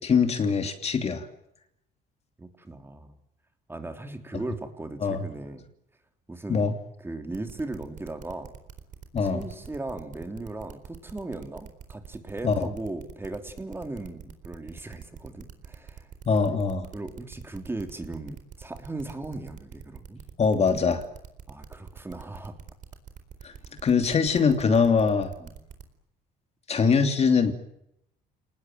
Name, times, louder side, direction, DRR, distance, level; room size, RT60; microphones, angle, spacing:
voice 1, 0.0-1.3 5.0-5.2 6.5-6.7 9.1-9.4 12.4-12.7 16.3-16.9 20.4-21.0 23.4-25.3 26.7-27.5, left 5 dB, 40° left, 7 dB, 3.0 m, -23 dB
voice 2, 2.4-3.1 3.7-5.7 6.3-6.7 7.0-8.5 9.2-16.1 16.5-16.6 16.9-20.2 21.5-22.6 25.4-25.5, right 2 dB, 15° right, 6 dB, 3.3 m, -37 dB
sound 1, 7.3-25.8, right 8 dB, 50° right, 4.2 m, -45 dB
29.5 x 19.5 x 9.2 m, 0.79 s
cardioid pair, 110°, 17 cm